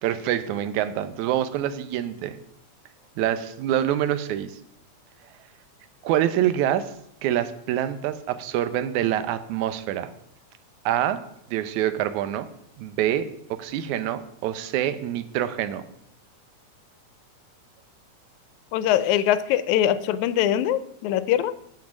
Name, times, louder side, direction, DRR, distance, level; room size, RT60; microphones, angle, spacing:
voice 1, 0.0-2.4 3.2-4.6 6.0-6.9 7.2-10.1 10.9-11.2 11.5-12.5 12.8-15.8, right 11 dB, 85° right, 12 dB, 2.1 m, -26 dB
voice 2, 18.7-21.5, left 11 dB, 85° left, 15 dB, 2.0 m, -22 dB
7.5 x 7.4 x 6.0 m, 0.75 s
omnidirectional pair, 3.3 m